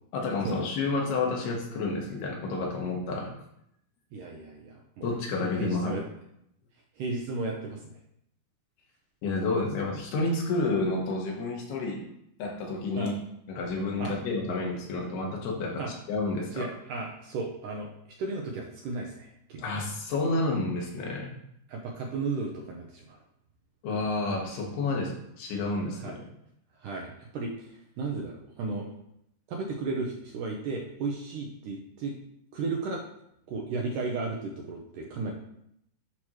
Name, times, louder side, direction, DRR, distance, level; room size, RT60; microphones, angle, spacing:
voice 1, 0.1-3.3 5.0-6.0 9.2-12.0 12.4-13.1 13.5-16.7 19.6-21.3 23.8-26.2, left 3 dB, 90° left, 0 dB, 3.3 m, -30 dB
voice 2, 4.1-5.1 5.4-6.0 7.0-7.8 12.9-13.1 14.0-14.1 15.8-15.9 16.5-17.9 18.2-19.7 21.7-23.2 26.0-26.2 26.8-28.9 29.5-32.2 32.5-33.0 33.5-35.3, right 3 dB, 75° right, 0 dB, 2.0 m, -34 dB
8.6 x 3.0 x 6.2 m, 0.76 s
omnidirectional pair, 4.5 m